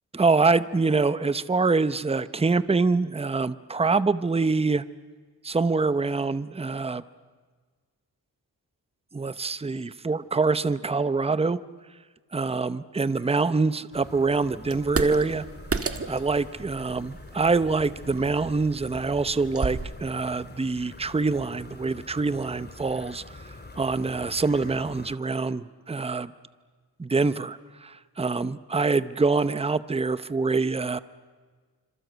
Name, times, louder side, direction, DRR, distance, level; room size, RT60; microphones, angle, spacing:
voice 1, 0.1-4.8 5.4-7.0 9.1-11.6 12.3-15.5 16.1-23.2 23.8-26.3 27.0-31.0, right 4 dB, 15° right, 14 dB, 0.7 m, -25 dB
sound 1, 13.9-25.2, left 2 dB, 25° left, 2.4 m, -45 dB
sound 2, 14.7-19.8, right 4 dB, 35° right, 1.7 m, -33 dB
27.0 x 26.5 x 8.1 m, 1.5 s
wide cardioid pair, 115°, 38 cm